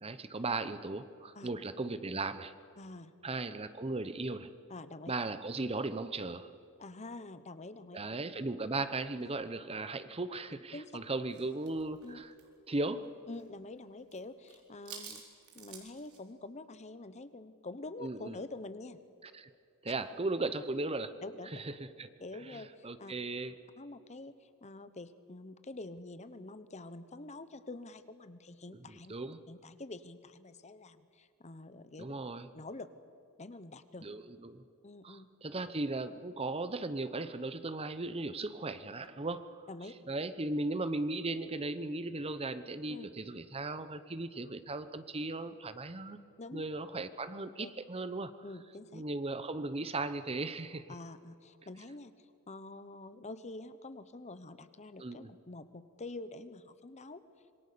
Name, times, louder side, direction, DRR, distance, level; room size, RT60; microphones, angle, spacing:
voice 1, 0.0-2.5 3.2-4.5 5.1-6.5 7.9-12.3 12.7-13.1 18.0-18.4 19.2-19.5 19.8-21.1 21.5-21.7 22.0-22.1 22.4-23.5 28.9-29.4 32.0-32.5 34.0-34.6 35.0-39.7 40.1-46.2 46.5-48.3 48.9-50.9 55.0-55.3, right 2 dB, 25° right, 12 dB, 0.8 m, -37 dB
voice 2, 2.8-3.1 4.7-5.1 6.8-8.0 9.2-9.4 10.7-10.9 12.0-12.2 13.3-15.2 15.5-19.0 21.2-21.6 22.2-23.1 23.8-29.1 29.5-32.1 32.5-32.9 33.4-34.1 34.8-35.3 39.7-40.0 42.9-43.1 46.4-46.6 47.6-47.7 48.4-49.0 50.9-52.1 52.5-57.2, left 2 dB, 30° left, 13 dB, 0.9 m, -46 dB
sound 1, 11.3-13.5 13.7-14.2 14.4-16.2, right 7 dB, 90° right, 4.4 m, -51 dB
26.0 x 23.0 x 6.9 m, 2.4 s
head